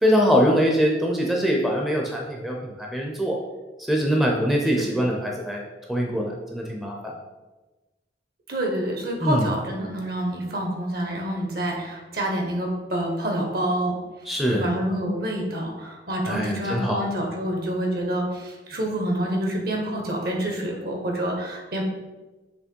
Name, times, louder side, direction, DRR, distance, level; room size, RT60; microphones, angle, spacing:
voice 1, 0.0-3.4 3.9-7.1 9.2-9.5 14.3-14.7 16.3-17.0, equal, ahead, -2 dB, 0.6 m, -23 dB
voice 2, 8.5-14.0 14.5-21.8, right 1 dB, 55° right, 1 dB, 1.2 m, -27 dB
6.8 x 3.2 x 4.5 m, 1.2 s
head